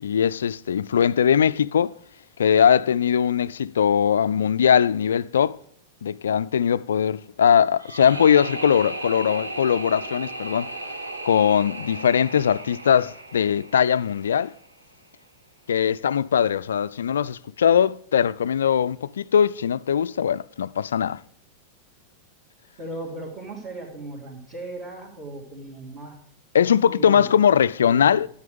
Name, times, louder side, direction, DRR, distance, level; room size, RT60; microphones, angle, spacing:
voice 1, 0.0-1.9 2.4-5.6 6.0-10.7 11.2-14.5 15.7-21.2 26.5-28.3, left 8 dB, 65° left, 0.4 m, -20 dB
sound 1, 7.8-14.8, right 2 dB, 80° right, 1.3 m, -36 dB
voice 2, 22.8-26.2 26.6-27.3 27.8-28.2, right 2 dB, 35° right, 3.1 m, -37 dB
12.5 x 9.8 x 5.2 m
figure-of-eight pair, 90°, 0 cm